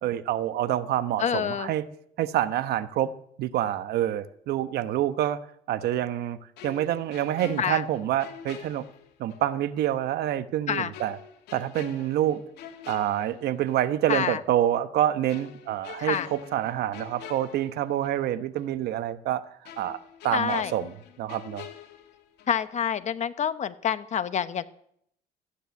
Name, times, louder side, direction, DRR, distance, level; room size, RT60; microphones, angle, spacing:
voice 1, 0.0-1.9 2.2-3.1 3.4-5.4 5.7-6.4 6.6-8.8 9.2-11.2 11.5-12.4 12.9-19.4 19.8-20.0 20.2-21.6, right 12 dB, 70° right, 12 dB, 1.0 m, -27 dB
voice 2, 1.2-1.7 7.6-7.8 10.7-10.9 14.1-14.4 16.0-16.3 20.3-20.7 22.5-24.6, left 8 dB, 45° left, 12 dB, 1.0 m, -27 dB
sound 1, 6.6-9.5 9.8-10.0 10.9-13.9 14.2-14.4 15.3-18.3 18.6-18.7 19.6-22.7 22.9-23.2, left 10 dB, 80° left, 2.2 m, -46 dB
14.5 x 10.0 x 9.5 m, 0.70 s
cardioid pair, 110°, 17 cm